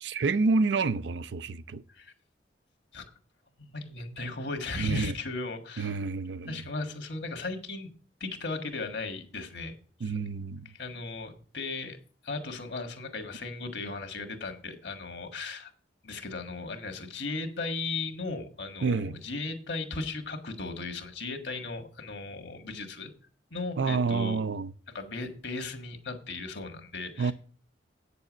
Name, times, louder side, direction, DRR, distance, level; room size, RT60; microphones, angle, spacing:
voice 1, 0.0-1.8 4.8-5.1 5.8-6.6 10.0-10.7 18.8-19.2 23.8-24.7 27.2-27.3, right 4 dB, 70° right, 0.5 m, -28 dB
voice 2, 3.6-6.0 6.5-7.9 8.2-9.7 10.0-10.1 10.6-12.0 12.2-15.7 16.0-23.1 23.5-24.4 24.9-27.3, left 3 dB, 65° left, 1.6 m, -36 dB
8.6 x 6.9 x 6.1 m
head